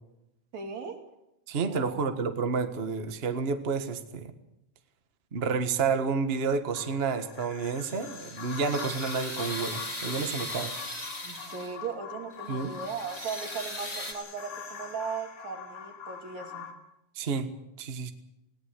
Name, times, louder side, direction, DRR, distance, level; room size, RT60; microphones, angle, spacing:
voice 1, 0.5-1.0 1.7-2.2 11.2-16.7, right 5 dB, 65° right, 4 dB, 3.9 m, -37 dB
voice 2, 1.5-4.3 5.3-10.7 12.5-12.7 17.1-17.5 17.8-18.1, right 5 dB, 40° right, 8 dB, 0.9 m, -30 dB
sound 1, 6.7-16.7, left 6 dB, 70° left, 4.1 m, -44 dB
sound 2, 7.9-11.9 12.4-14.1, left 1 dB, 20° left, 3.0 m, -38 dB
20.0 x 18.0 x 8.3 m, 0.86 s
omnidirectional pair, 3.5 m